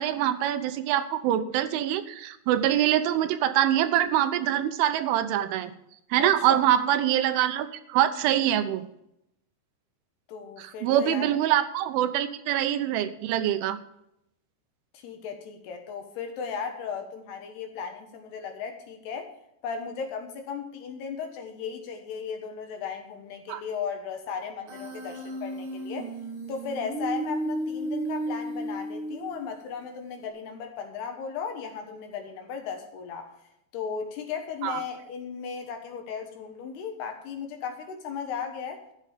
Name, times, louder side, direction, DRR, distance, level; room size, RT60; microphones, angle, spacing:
voice 1, 0.0-5.7 6.1-8.8 10.6-13.8 23.5-23.6 34.6-34.8, right 11 dB, 85° right, 10 dB, 3.3 m, -24 dB
voice 2, 6.2-6.6 10.3-11.3 14.9-19.3 19.6-26.1 26.5-33.3 33.7-38.8, left 6 dB, 70° left, 5 dB, 3.0 m, -36 dB
Human voice, 24.7-29.6, right 1 dB, 65° right, 1.3 m, -33 dB
13.0 x 8.9 x 5.1 m, 0.78 s
omnidirectional pair, 5.5 m